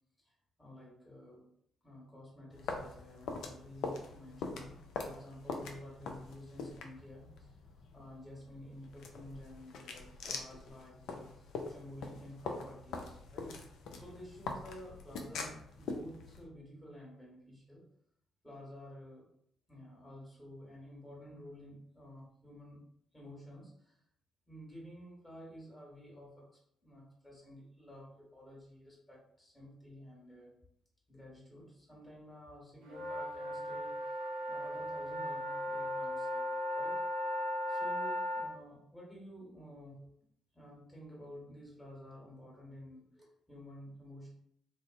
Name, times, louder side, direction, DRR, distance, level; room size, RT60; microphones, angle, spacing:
voice 1, 0.6-1.5 1.8-7.5 7.9-17.8 18.4-19.3 19.7-22.8 23.1-24.0 24.5-26.5 26.8-30.5 31.1-36.5 36.7-37.0 37.7-40.1 40.5-44.3, equal, 15° left, -4 dB, 1.3 m, -52 dB
sound 1, 2.5-16.4, left 4 dB, 65° left, 0.3 m, -44 dB
sound 2, 32.9-38.5, left 1 dB, 80° right, 0.4 m, -37 dB
2.5 x 2.1 x 2.5 m, 0.69 s
hypercardioid pair, 45°, 0 cm